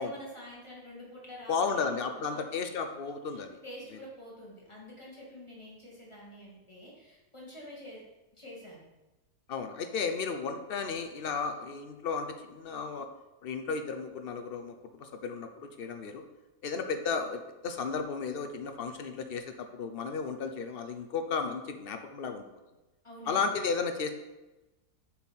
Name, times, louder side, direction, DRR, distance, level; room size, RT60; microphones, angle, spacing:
voice 1, 0.0-2.4 3.6-8.1 8.3-8.8 23.0-23.6, left 1 dB, 20° left, -4 dB, 2.0 m, -47 dB
voice 2, 1.5-3.6 9.5-13.1 13.4-16.2 16.6-22.5 23.3-24.1, left 5 dB, 65° left, 7 dB, 0.5 m, -34 dB
7.5 x 4.5 x 5.6 m, 1.1 s
omnidirectional pair, 1.7 m